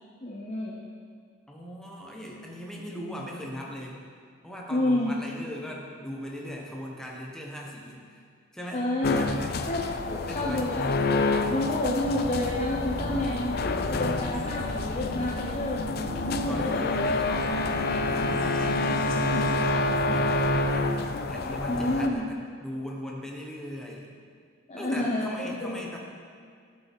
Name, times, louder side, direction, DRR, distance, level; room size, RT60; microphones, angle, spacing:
voice 1, 0.2-0.8 4.7-5.1 8.7-9.2 9.7-9.8 10.1-10.9 11.5-13.6 13.9-15.8 16.3-16.8 21.7-22.2 24.7-25.8, left 1 dB, 35° left, -4 dB, 0.8 m, -29 dB
voice 2, 1.5-4.0 4.4-8.2 8.5-8.9 9.2-9.5 10.3-10.7 15.8-24.2 24.7-26.0, equal, 5° left, -2 dB, 1.2 m, -39 dB
sound 1, 9.0-22.1, left 2 dB, 50° left, 0.5 m, -28 dB
sound 2, 12.0-19.5, left 1 dB, 85° left, 1.4 m, -36 dB
12.5 x 6.7 x 3.6 m, 2.2 s
head